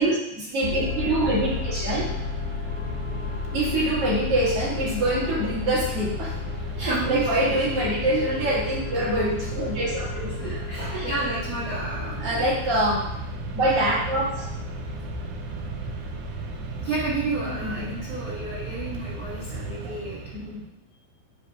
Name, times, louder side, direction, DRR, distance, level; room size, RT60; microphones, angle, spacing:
voice 1, 0.0-2.1 3.5-6.3 6.8-11.1 12.2-13.1 13.5-14.4 17.4-18.0 20.3-20.6, right 1 dB, 45° right, -6 dB, 2.6 m, -25 dB
sound 1, 0.6-19.8, left 5 dB, 90° left, 1.6 m, -34 dB
Mechanisms, 1.2-20.7, right 4 dB, 80° right, 2.3 m, -36 dB
voice 2, 6.5-7.5 10.3-12.5 16.8-20.2, right 3 dB, 60° right, -8 dB, 1.3 m, -31 dB
7.8 x 2.8 x 4.6 m, 0.85 s
omnidirectional pair, 4.2 m